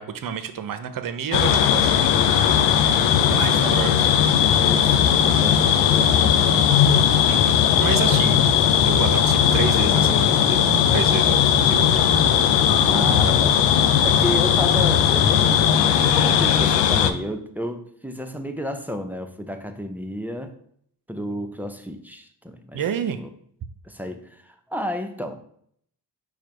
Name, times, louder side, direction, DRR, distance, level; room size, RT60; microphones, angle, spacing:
voice 1, 0.0-1.9 2.2-2.7 3.3-4.1 7.3-8.4 8.8-12.0 13.3-13.4 22.7-23.2, right 8 dB, 50° right, 10 dB, 0.7 m, -30 dB
sound 1, 1.3-17.1, left 9 dB, 85° left, 0.5 m, -18 dB
voice 2, 3.3-6.9 12.8-13.6 14.0-20.5 21.1-22.8 23.2-23.3 23.8-25.4, equal, 5° right, 6 dB, 0.6 m, -32 dB
4.9 x 2.3 x 4.5 m, 0.64 s
supercardioid pair, 45°, 43 cm